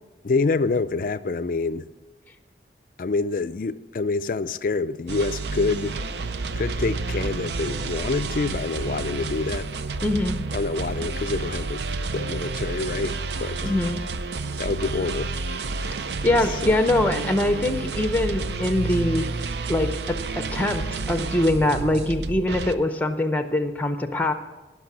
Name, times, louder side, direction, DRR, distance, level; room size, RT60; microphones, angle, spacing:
voice 1, 0.2-1.9 3.0-6.0 6.6-9.7 10.5-11.8 12.1-13.7 14.6-15.3 16.5-16.8, left 3 dB, 50° left, 15 dB, 0.4 m, -27 dB
sound 1, 5.1-22.7, right 3 dB, 75° right, 0.5 m, -30 dB
voice 2, 10.0-10.4 13.6-14.0 16.2-19.3 19.7-24.3, left 1 dB, 10° left, 8 dB, 0.7 m, -23 dB
16.5 x 6.0 x 6.1 m, 1.2 s
head